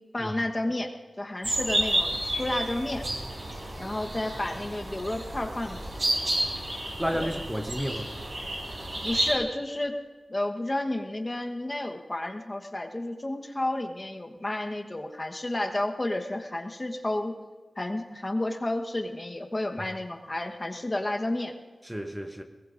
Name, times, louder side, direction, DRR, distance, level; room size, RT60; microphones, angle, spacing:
voice 1, 0.1-3.0 3.8-6.2 7.1-7.3 9.0-10.0 10.3-17.3 17.8-21.5, left 1 dB, 25° left, 1.1 m, -31 dB
sound 1, 1.4-9.3, right 1 dB, 50° right, 4.5 m, -31 dB
voice 2, 7.0-8.1 21.8-22.4, equal, 10° right, 0.8 m, -32 dB
21.5 x 20.5 x 2.6 m
wide cardioid pair, 100°, 0 cm